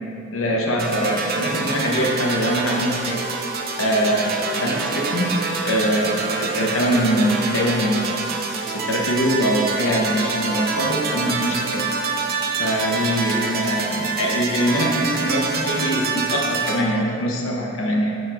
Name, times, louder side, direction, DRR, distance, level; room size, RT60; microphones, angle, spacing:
voice 1, 0.3-3.2 3.8-8.2 8.7-11.9 12.6-18.1, equal, 80° left, -1 dB, 0.8 m, -23 dB
sound 1, 0.8-16.8, right 4 dB, 45° right, 0.4 m, -26 dB
6.7 x 6.0 x 2.4 m, 2.9 s
head